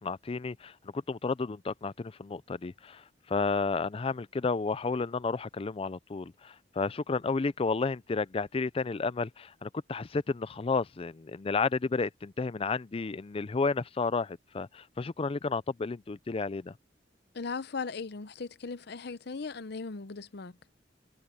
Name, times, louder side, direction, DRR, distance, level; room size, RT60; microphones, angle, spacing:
voice 1, 0.0-16.7, left 4 dB, 30° left, 0.4 m, -32 dB
voice 2, 17.3-20.5, left 4 dB, 65° left, 0.7 m, -38 dB
head